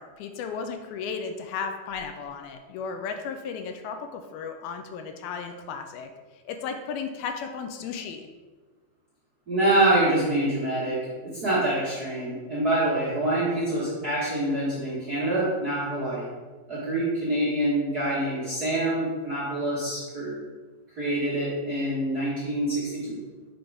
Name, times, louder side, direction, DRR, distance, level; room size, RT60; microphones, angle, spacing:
voice 1, 0.0-6.1 6.5-8.3, left 6 dB, 85° left, 6 dB, 2.5 m, -34 dB
voice 2, 9.5-16.3 16.7-20.3 21.0-23.2, right 1 dB, 45° right, -10 dB, 1.3 m, -26 dB
6.8 x 3.9 x 4.8 m, 1.3 s
omnidirectional pair, 4.3 m